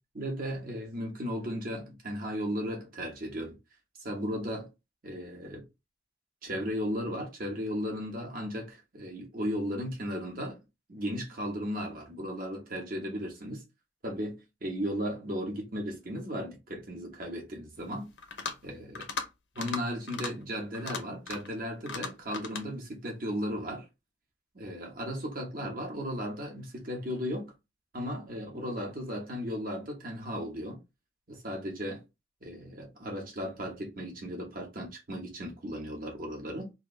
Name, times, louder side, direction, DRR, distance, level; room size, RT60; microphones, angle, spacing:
voice 1, 0.1-3.6 4.0-4.7 5.0-5.7 6.4-10.6 10.9-13.6 14.0-18.1 18.6-19.1 19.6-23.9 24.5-27.5 27.9-30.8 31.3-32.0 32.4-36.7, equal, 50° right, 1.2 m, -35 dB
sound 1, 18.2-18.6 19.0-19.3 19.6-19.8 20.1-20.3 20.7-21.5 21.9-22.7, left 5 dB, 75° left, 0.9 m, -37 dB
3.3 x 2.6 x 3.2 m
head